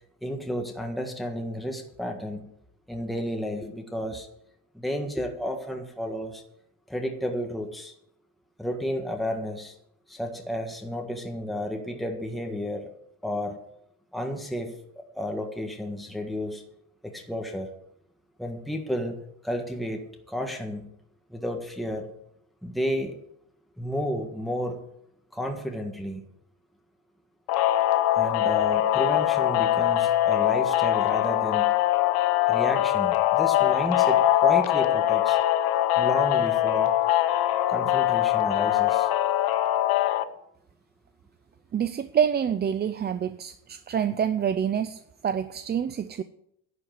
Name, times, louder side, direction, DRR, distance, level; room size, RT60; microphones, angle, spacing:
voice 1, 0.2-2.5 2.9-4.3 4.7-6.4 6.9-7.9 8.6-9.7 10.1-12.9 13.2-13.6 14.1-14.7 15.1-16.6 17.0-17.7 18.4-19.2 19.4-20.9 21.3-22.1 22.6-23.1 23.8-24.8 25.3-26.2 28.1-31.7 32.5-35.4 36.0-36.9 37.7-39.1, equal, ahead, 2 dB, 1.6 m, -32 dB
sound 1, 27.5-40.2, left 13 dB, 85° left, 1.1 m, -22 dB
voice 2, 41.7-46.2, right 8 dB, 30° right, 12 dB, 0.5 m, -27 dB
11.0 x 7.8 x 9.3 m, 0.75 s
cardioid pair, 135°, 36 cm